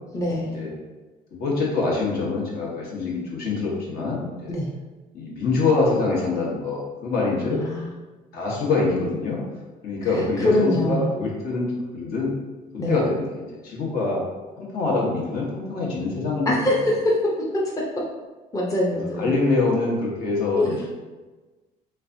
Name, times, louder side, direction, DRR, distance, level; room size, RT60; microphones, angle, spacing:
voice 1, 0.1-0.5 4.5-4.7 7.5-7.9 10.4-11.0 12.8-13.0 16.5-17.1 18.5-19.3 20.6-20.8, left 1 dB, 20° left, -3 dB, 0.6 m, -23 dB
voice 2, 1.3-4.6 5.1-7.6 8.3-9.4 9.8-12.3 12.9-14.2 14.6-16.8 19.2-20.9, left 3 dB, 65° left, -4 dB, 1.2 m, -25 dB
3.3 x 3.2 x 2.6 m, 1.2 s
cardioid pair, 110°, 17 cm